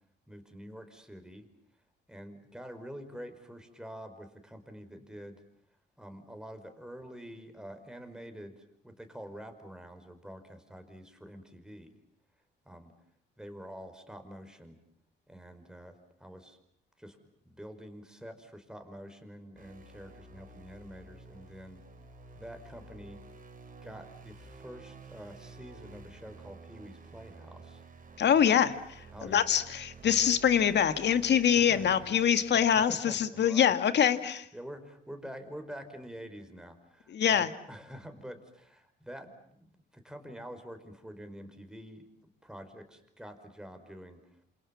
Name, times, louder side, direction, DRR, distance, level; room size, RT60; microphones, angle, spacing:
voice 1, 0.3-1.5 2.1-5.4 6.0-12.0 12.7-12.9 13.4-14.8 15.3-16.6 17.0-17.2 17.4-21.8 22.3-23.2 23.8-27.8 29.1-29.4 31.6-32.1 32.7-33.7 34.1-42.1 42.4-44.2, equal, 5° right, 7 dB, 5.2 m, -47 dB
sound 1, 19.6-32.9, right 3 dB, 45° right, 4.7 m, -51 dB
voice 2, 28.2-34.5 37.1-37.5, left 8 dB, 60° left, 10 dB, 2.0 m, -25 dB
28.0 x 27.5 x 7.3 m, 0.68 s
cardioid pair, 90°, 20 cm